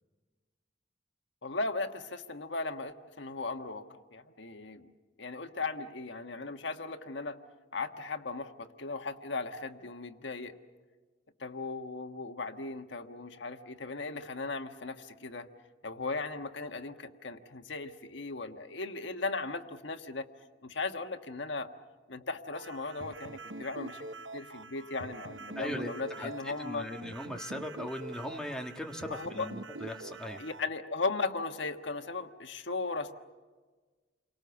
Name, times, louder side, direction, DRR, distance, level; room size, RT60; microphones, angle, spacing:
voice 1, 1.4-4.8 5.2-7.4 7.7-10.5 11.4-15.5 15.8-20.3 20.6-21.7 22.1-24.0 24.3-26.9 29.1-29.5 30.4-33.2, left 3 dB, 75° left, 6 dB, 1.4 m, -37 dB
sound 1, 22.5-30.6, right 2 dB, 80° right, 0.9 m, -45 dB
voice 2, 25.5-30.4, left 1 dB, 5° left, 1 dB, 1.6 m, -39 dB
29.5 x 24.0 x 7.1 m, 1.4 s
head